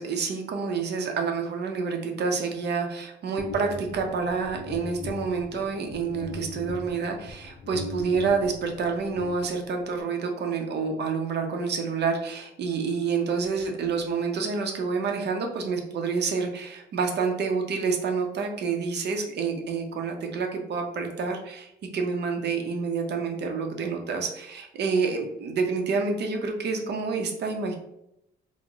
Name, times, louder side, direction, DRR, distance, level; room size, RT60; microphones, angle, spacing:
voice 1, 0.0-27.7, right 5 dB, 60° right, 3 dB, 0.6 m, -28 dB
sound 1, 3.4-10.0, left 3 dB, 40° left, 0.5 m, -40 dB
3.8 x 2.1 x 2.3 m, 0.80 s
cardioid pair, 90°, 20 cm